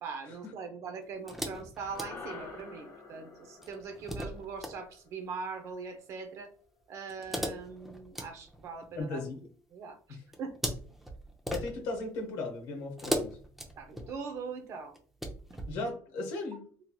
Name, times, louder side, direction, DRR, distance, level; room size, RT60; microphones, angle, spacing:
voice 1, 0.0-6.5 6.9-9.2 9.7-10.6 13.8-15.0, right 5 dB, 50° right, 7 dB, 0.6 m, -41 dB
sound 1, 1.3-2.8 3.6-4.8 7.1-9.3 10.3-12.1 13.0-14.3 14.9-15.7, equal, 5° right, 0.4 m, -38 dB
sound 2, 1.9-6.3, left 4 dB, 40° left, 0.8 m, -49 dB
voice 2, 9.0-9.4 10.1-10.2 11.5-13.4 15.7-16.7, left 2 dB, 80° left, 2 dB, 0.9 m, -36 dB
3.0 x 2.7 x 2.2 m, 0.44 s
cardioid pair, 135°, 6 cm